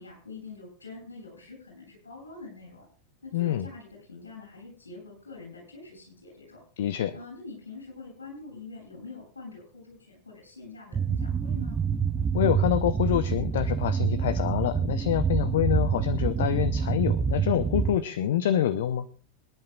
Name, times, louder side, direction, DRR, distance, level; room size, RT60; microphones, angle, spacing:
voice 1, 0.0-2.9 3.2-6.6 7.1-11.8, left 3 dB, 75° left, -2 dB, 7.9 m, -45 dB
voice 2, 3.3-3.7 6.8-7.2 12.3-19.1, left 11 dB, 55° left, 15 dB, 0.6 m, -26 dB
sound 1, 10.9-18.0, right 6 dB, 20° right, 0.7 m, -27 dB
24.5 x 10.5 x 2.4 m, 0.41 s
figure-of-eight pair, 90°, 0 cm